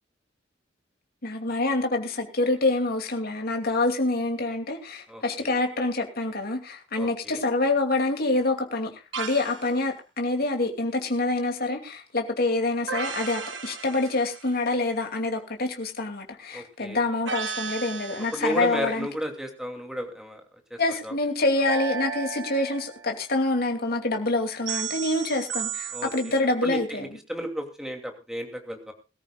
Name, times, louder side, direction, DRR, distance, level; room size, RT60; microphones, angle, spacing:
voice 1, 1.2-19.1 20.8-27.1, left 2 dB, 55° left, 2.7 m, -26 dB
voice 2, 5.1-5.5 6.9-7.4 16.5-17.0 18.3-20.4 20.7-21.2 25.9-28.9, equal, 5° right, 2.8 m, -33 dB
sound 1, 9.1-9.7 12.9-14.6 17.3-18.7 21.7-23.1 24.7-26.4, right 6 dB, 75° right, 1.4 m, -34 dB
22.0 x 14.0 x 2.4 m
head